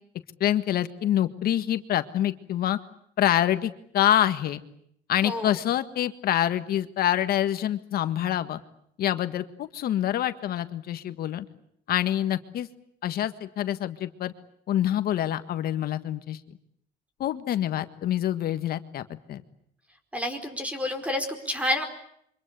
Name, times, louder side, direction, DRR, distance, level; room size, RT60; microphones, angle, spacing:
voice 1, 0.4-2.8 3.2-4.6 5.1-8.6 9.0-11.4 11.9-12.7 13.0-14.3 14.7-16.4 17.2-19.4, left 11 dB, 65° left, 10 dB, 1.7 m, -26 dB
voice 2, 5.2-5.5 20.1-21.8, left 1 dB, 10° right, 7 dB, 4.8 m, -29 dB
28.0 x 25.0 x 8.4 m, 0.71 s
cardioid pair, 110°, 17 cm